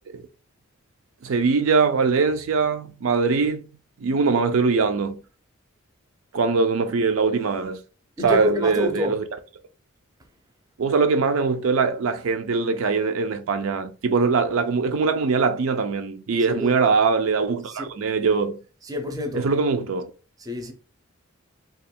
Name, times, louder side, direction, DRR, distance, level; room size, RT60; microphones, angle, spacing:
voice 1, 1.2-3.6 4.0-5.2 6.3-7.8 8.2-9.2 10.8-18.6 19.3-20.1, right 4 dB, 70° right, 0.4 m, -22 dB
voice 2, 8.2-9.1 16.5-16.7 17.7-17.9 18.8-19.5 20.4-20.7, left 1 dB, 15° right, 0.5 m, -28 dB
2.9 x 2.3 x 4.2 m
head